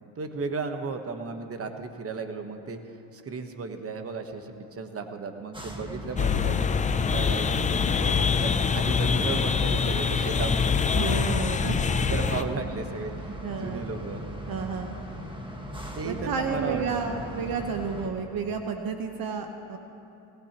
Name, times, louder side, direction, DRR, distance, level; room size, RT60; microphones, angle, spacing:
voice 1, 0.2-2.8 3.1-6.7 7.1-10.8 12.1-14.3 15.9-17.0, right 4 dB, 30° right, 6 dB, 1.2 m, -35 dB
sound 1, 5.5-18.1, equal, 10° right, 1.5 m, -39 dB
sound 2, 6.2-12.4, left 6 dB, 20° left, 0.4 m, -24 dB
voice 2, 10.9-12.2 13.4-13.9 14.5-15.0 16.0-19.8, right 5 dB, 50° right, 5 dB, 1.1 m, -31 dB
19.0 x 18.0 x 3.0 m, 2.8 s
cardioid pair, 100°, 44 cm